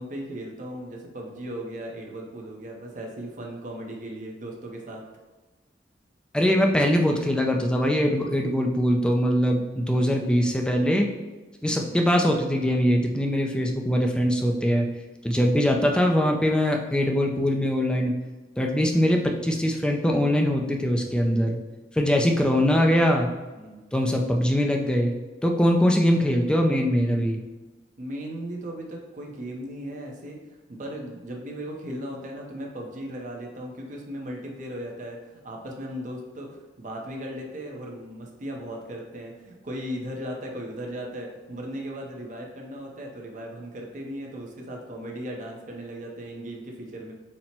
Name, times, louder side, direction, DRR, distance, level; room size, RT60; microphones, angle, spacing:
voice 1, 0.0-5.0 11.6-11.9 15.7-16.0 23.5-23.8 28.0-47.1, equal, 45° right, 0 dB, 0.6 m, -37 dB
voice 2, 6.3-11.1 11.6-14.9 15.2-18.1 18.6-21.6 21.9-23.3 23.9-25.1 25.4-27.4, equal, 5° left, 1 dB, 0.3 m, -22 dB
4.2 x 2.1 x 4.1 m, 1.2 s
head